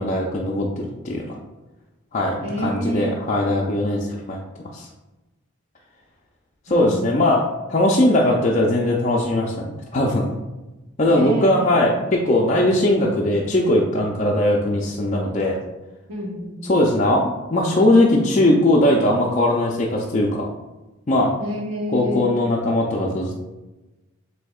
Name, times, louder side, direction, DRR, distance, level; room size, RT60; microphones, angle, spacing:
voice 1, 0.0-1.3 2.1-4.4 4.7-4.9 6.7-7.4 7.7-10.3 11.0-15.6 16.7-20.5 21.1-21.3 21.9-23.3, left 1 dB, 35° left, -3 dB, 0.4 m, -19 dB
voice 2, 2.4-3.1 6.7-7.1 11.1-11.7 16.1-16.8 21.4-22.3, equal, 85° right, -2 dB, 1.2 m, -28 dB
7.7 x 2.7 x 2.3 m, 1.1 s
head